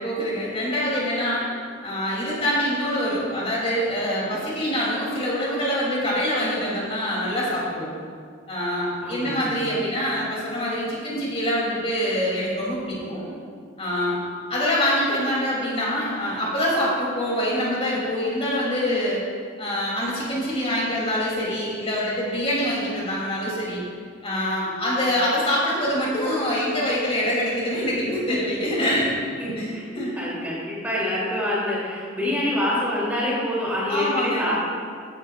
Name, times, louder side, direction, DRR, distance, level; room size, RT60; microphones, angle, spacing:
voice 1, 0.0-1.5 1.8-7.9 8.5-13.3 13.8-14.2 14.5-19.2 19.6-23.8 24.2-29.1 29.6-30.1 33.9-34.5, equal, 30° left, -6 dB, 3.1 m, -25 dB
voice 2, 9.0-9.7 28.3-28.4 28.8-29.1 29.4-29.9 30.2-34.7, left 1 dB, 10° right, -7 dB, 3.1 m, -26 dB
16.0 x 10.5 x 2.5 m, 2.1 s
head